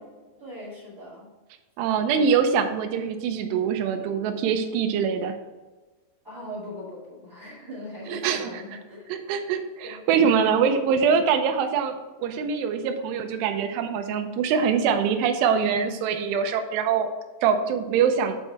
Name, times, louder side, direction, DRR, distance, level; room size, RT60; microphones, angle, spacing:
voice 1, 0.4-1.3 6.2-9.1 9.8-10.0, left 1 dB, 25° right, -6 dB, 2.0 m, -40 dB
voice 2, 1.8-5.3 8.1-8.5 9.1-17.1 17.4-18.4, right 6 dB, 80° right, 6 dB, 2.6 m, -24 dB
8.3 x 4.5 x 4.3 m, 1.2 s
omnidirectional pair, 5.3 m